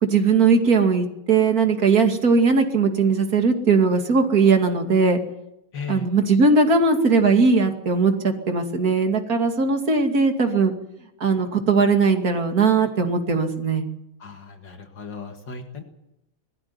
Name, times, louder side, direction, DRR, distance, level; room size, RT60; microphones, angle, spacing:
voice 1, 0.0-5.2 5.9-10.7 11.2-13.9, right 4 dB, 45° right, 4 dB, 2.9 m, -19 dB
voice 2, 5.7-6.1 14.2-15.8, left 4 dB, 65° left, 5 dB, 2.5 m, -36 dB
21.0 x 15.0 x 9.7 m, 0.84 s
omnidirectional pair, 2.1 m